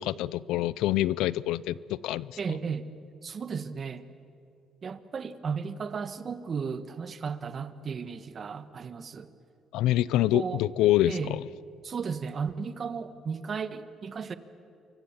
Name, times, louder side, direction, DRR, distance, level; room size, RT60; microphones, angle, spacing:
voice 1, 0.0-2.4 9.7-11.4, left 14 dB, 90° left, 0.5 m, -26 dB
voice 2, 2.4-2.9 3.2-4.1 4.8-9.3 10.1-10.6 11.1-11.4 11.8-14.4, right 6 dB, 45° right, 1.4 m, -34 dB
27.5 x 24.0 x 7.3 m
cardioid pair, 95°, 0 cm